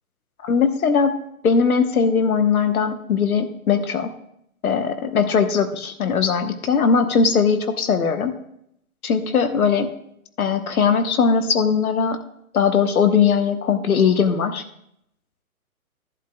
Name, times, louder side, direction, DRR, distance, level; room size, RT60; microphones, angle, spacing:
voice 1, 0.4-1.2 1.4-4.1 4.6-8.4 9.0-9.9 10.4-12.2 12.5-14.6, left 6 dB, 80° left, 7 dB, 1.2 m, -19 dB
11.5 x 11.0 x 2.3 m, 0.75 s
hypercardioid pair, 160°, 43 cm